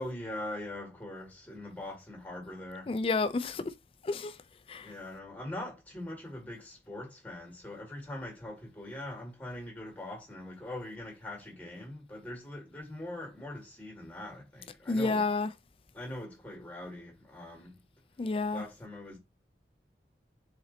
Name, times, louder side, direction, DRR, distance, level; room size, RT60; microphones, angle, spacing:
voice 1, 0.0-2.9 4.8-15.2 15.9-17.8 18.5-19.2, left 1 dB, 10° left, 1.8 m, -42 dB
voice 2, 2.9-3.7 4.0-4.4 4.7-4.9 14.9-15.5 18.2-18.6, left 3 dB, 30° left, 0.3 m, -30 dB
4.0 x 3.1 x 3.9 m
head